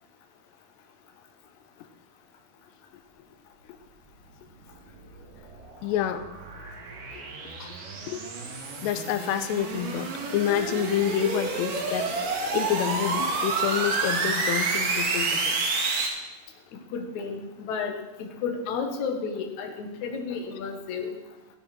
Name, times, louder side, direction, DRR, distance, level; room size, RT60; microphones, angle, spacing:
sound 1, 4.8-16.1, right 3 dB, 65° right, 4.1 m, -29 dB
voice 1, 5.8-6.2 7.1-7.2 7.6-7.8 8.1-8.6 8.8-15.6, left 10 dB, 90° left, 10 dB, 3.0 m, -28 dB
voice 2, 16.9-17.9 18.2-21.1, left 5 dB, 55° left, 3 dB, 2.5 m, -32 dB
15.0 x 12.5 x 6.1 m, 1.1 s
omnidirectional pair, 5.0 m